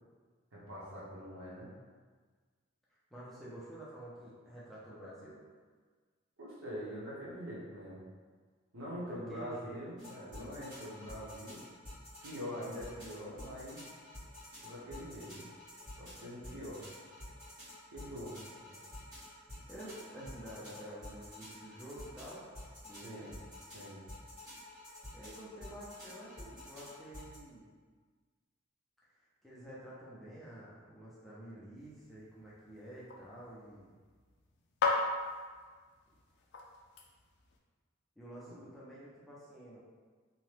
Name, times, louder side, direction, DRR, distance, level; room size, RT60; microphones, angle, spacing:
voice 1, 0.5-1.7 6.4-8.0 8.7-11.6 12.2-13.8 14.6-15.5 16.0-16.8 17.9-18.4 23.0-23.3 23.7-24.0 38.5-38.6, equal, 85° right, -7 dB, 1.0 m, -44 dB
voice 2, 3.1-5.4 9.0-9.8 12.9-13.1 18.6-18.8 19.2-19.4 19.7-22.5 22.8-23.3 25.1-27.7 29.4-33.9 38.2-39.8, right 1 dB, ahead, -9 dB, 0.5 m, -49 dB
sound 1, 10.0-27.4, left 1 dB, 45° right, 1.4 m, -50 dB
sound 2, 31.8-37.6, left 3 dB, 55° left, 0.4 m, -39 dB
2.8 x 2.2 x 3.2 m, 1.5 s
head